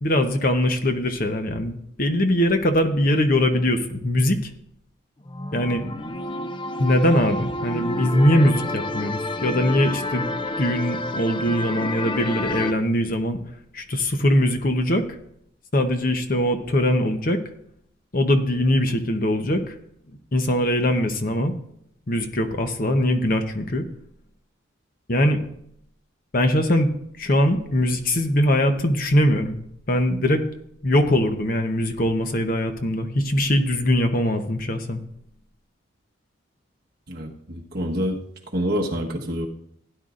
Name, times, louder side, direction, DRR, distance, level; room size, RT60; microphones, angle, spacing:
voice 1, 0.0-4.5 5.5-5.8 6.8-13.4 13.7-15.0 15.7-17.4 18.1-19.7 20.3-21.5 22.1-23.8 25.1-25.4 26.3-26.9 27.2-29.6 29.9-30.4 30.8-35.0, left 1 dB, 45° left, 6 dB, 0.9 m, -21 dB
sound 1, 5.3-12.7, left 1 dB, 25° left, 0.4 m, -29 dB
voice 2, 37.1-38.2 38.5-39.5, equal, 50° right, 0 dB, 1.3 m, -26 dB
16.5 x 10.0 x 2.5 m, 0.72 s
head